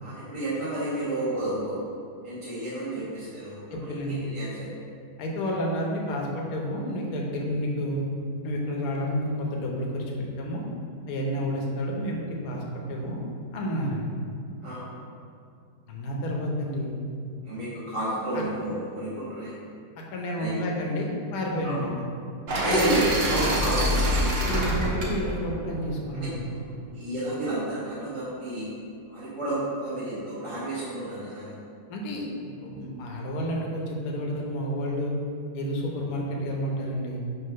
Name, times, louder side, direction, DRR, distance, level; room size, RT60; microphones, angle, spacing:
voice 1, 0.0-1.8 2.2-3.6 4.1-4.7 14.6-14.8 17.4-19.5 20.3-20.5 21.6-21.8 22.6-23.9 26.9-28.7 29.1-31.5, right 1 dB, 20° right, -11 dB, 1.1 m, -30 dB
voice 2, 3.7-4.2 5.2-8.0 8.4-10.0 10.4-10.6 11.1-13.2 13.5-14.0 15.9-17.0 18.3-18.4 20.1-21.9 24.5-26.4 31.9-35.1 35.5-37.2, equal, 60° left, -1 dB, 1.2 m, -30 dB
sound 1, 22.5-26.5, equal, 45° right, 0.9 m, -26 dB
5.7 x 3.3 x 5.6 m, 2.4 s
omnidirectional pair, 2.0 m